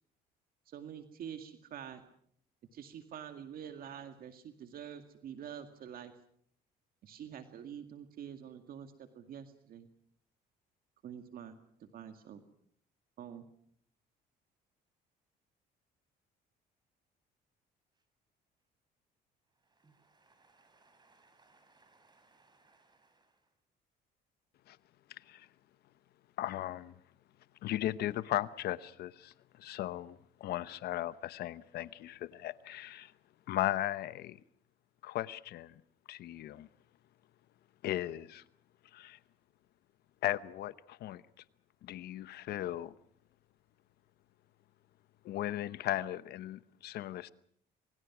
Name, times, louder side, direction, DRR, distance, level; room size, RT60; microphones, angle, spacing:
voice 1, 0.7-2.0 2.7-6.1 7.0-9.9 11.0-12.4 13.2-13.5, right 8 dB, 60° right, 2.1 m, -47 dB
voice 2, 19.5-23.5, right 3 dB, 25° right, 7.1 m, -67 dB
voice 3, 25.1-25.5 26.4-26.9 27.6-33.1 33.5-34.4 35.0-35.8 36.1-36.7 37.8-38.4 38.9-39.2 40.2-41.2 41.8-42.9 45.2-47.3, left 13 dB, 70° left, 0.9 m, -37 dB
27.0 x 23.0 x 6.1 m
cardioid pair, 110°, 17 cm